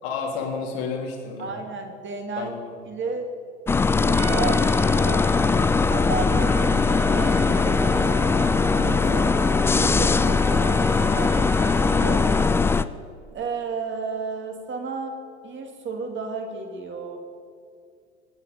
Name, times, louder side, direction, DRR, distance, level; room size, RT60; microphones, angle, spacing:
voice 1, 0.0-1.6 2.4-2.7 3.1-3.2, left 5 dB, 60° left, 1 dB, 3.5 m, -31 dB
voice 2, 1.4-2.5 2.9-3.3 4.0-5.6 5.9-9.3 9.7-12.2 13.3-15.2 15.4-17.2, right 4 dB, 35° right, 3 dB, 2.9 m, -33 dB
sound 1, 3.7-12.8, left 4 dB, 10° left, 0.3 m, -20 dB
Trumpet, 4.1-12.6, right 6 dB, 75° right, 0.9 m, -36 dB
24.0 x 10.0 x 5.3 m, 2.4 s
figure-of-eight pair, 70°, 34 cm